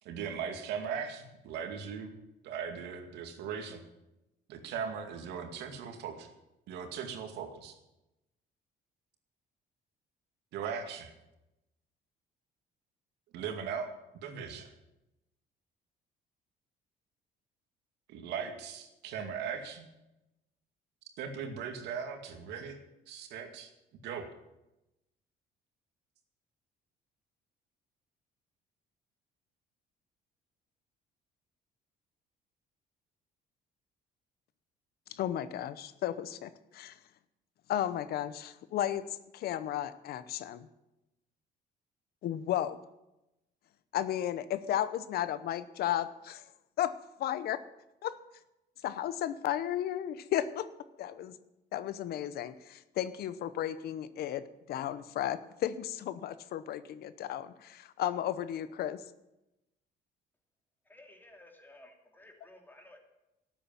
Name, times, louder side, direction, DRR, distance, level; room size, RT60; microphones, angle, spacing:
voice 1, 0.0-2.1 2.4-3.8 4.5-6.3 6.7-7.8 10.5-11.1 13.3-13.9 14.2-14.7 18.1-19.9 21.2-22.8 23.1-23.7 24.0-24.3, right 7 dB, 85° right, 5 dB, 2.3 m, -38 dB
voice 2, 35.1-37.0 37.7-40.7 42.2-42.8 43.9-46.4 46.8-47.6 48.0-48.2 48.8-50.7 51.0-51.4 51.7-59.0, left 11 dB, 65° left, 14 dB, 0.9 m, -34 dB
voice 3, 60.8-63.0, left 1 dB, 10° left, 3 dB, 2.9 m, -55 dB
12.5 x 8.7 x 9.1 m, 0.92 s
cardioid pair, 110°, 17 cm